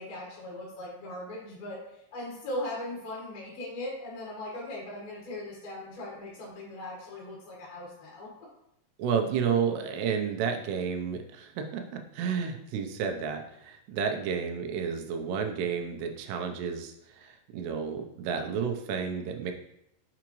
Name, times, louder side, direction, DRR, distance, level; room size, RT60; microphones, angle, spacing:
voice 1, 0.0-8.3, left 1 dB, 65° left, -4 dB, 3.0 m, -39 dB
voice 2, 9.0-19.5, right 6 dB, 80° right, 4 dB, 2.8 m, -31 dB
7.0 x 4.9 x 3.1 m, 0.77 s
omnidirectional pair, 5.0 m